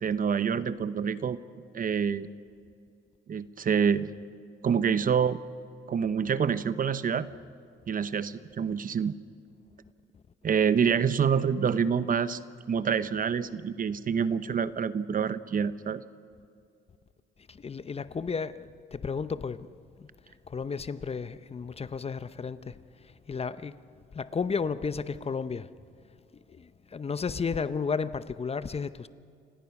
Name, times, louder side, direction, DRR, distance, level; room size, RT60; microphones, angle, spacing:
voice 1, 0.0-1.4 1.7-2.3 3.3-4.1 4.6-5.4 5.9-7.3 7.9-9.1 10.4-12.4 12.7-16.0, right 7 dB, 45° right, 0.9 m, -27 dB
voice 2, 17.5-19.7 20.5-22.8 23.3-23.7 24.1-25.7 26.6-29.1, left 5 dB, 30° left, 0.7 m, -33 dB
29.5 x 17.0 x 6.0 m
cardioid pair, 90°, 20 cm